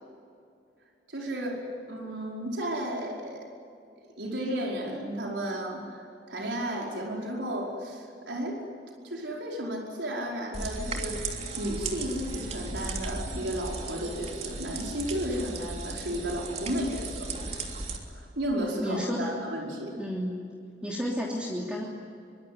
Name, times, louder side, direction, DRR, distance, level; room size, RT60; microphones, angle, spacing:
voice 1, 1.1-3.5 4.2-8.6 9.0-11.2 11.6-17.3 18.1-19.9, equal, 90° right, -1 dB, 5.1 m, -33 dB
sound 1, 10.5-18.0, right 3 dB, 35° right, 3.2 m, -36 dB
voice 2, 18.8-19.3 20.0-20.4 20.8-21.8, equal, 5° right, -4 dB, 3.1 m, -31 dB
24.5 x 24.0 x 9.5 m, 2.4 s
head